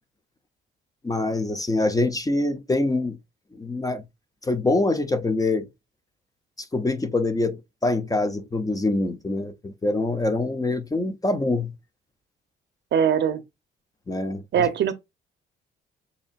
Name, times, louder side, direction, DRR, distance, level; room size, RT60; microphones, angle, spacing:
voice 1, 1.0-3.2 3.5-4.0 4.4-5.7 6.6-11.7 14.1-14.7, left 2 dB, 20° left, 0.6 m, -25 dB
voice 2, 12.9-13.4 14.5-14.9, right 8 dB, 60° right, 0.7 m, -21 dB
6.9 x 2.7 x 2.5 m
cardioid pair, 90°, 20 cm